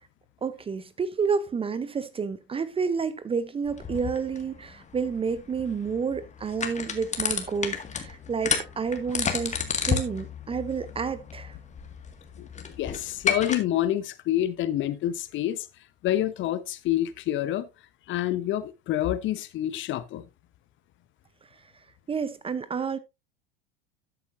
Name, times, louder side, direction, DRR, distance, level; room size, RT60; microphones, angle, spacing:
voice 1, 0.4-11.6 22.1-23.0, right 5 dB, 20° right, 0.7 m, -30 dB
sound 1, 3.7-13.6, left 6 dB, 25° left, 1.9 m, -32 dB
voice 2, 12.8-15.7 16.0-17.7 18.1-20.2, left 12 dB, 40° left, 0.9 m, -27 dB
12.5 x 8.3 x 2.6 m
hypercardioid pair, 85°, 31 cm